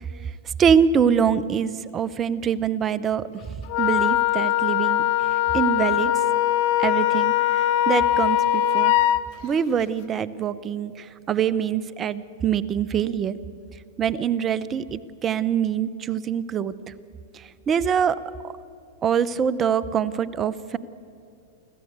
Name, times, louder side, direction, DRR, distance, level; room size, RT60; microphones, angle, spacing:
voice 1, 0.6-3.3 3.8-5.0 5.5-6.1 6.8-8.9 9.4-13.4 14.0-16.7 17.7-18.2 18.4-18.5 19.0-20.8, right 8 dB, 30° right, 17 dB, 0.8 m, -24 dB
Wind instrument woodwind instrument, 3.7-9.2, left 13 dB, 55° left, 0.8 m, -21 dB
25.0 x 15.0 x 8.1 m, 2.5 s
hypercardioid pair, 110°, 0 cm